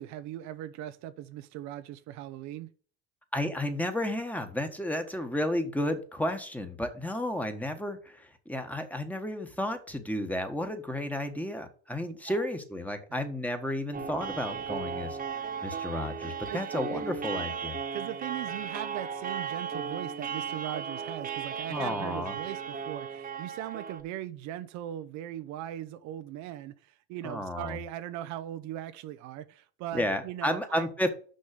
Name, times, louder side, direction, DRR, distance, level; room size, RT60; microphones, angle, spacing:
voice 1, 0.0-2.7 12.0-12.5 16.4-17.1 17.9-30.9, right 12 dB, 65° right, 0.7 m, -39 dB
voice 2, 3.3-17.8 21.7-22.3 27.2-27.8 29.9-31.1, left 1 dB, 5° left, 1.4 m, -32 dB
sound 1, 13.9-24.0, right 6 dB, 25° right, 1.4 m, -36 dB
6.4 x 5.5 x 6.8 m
supercardioid pair, 95°, 31 cm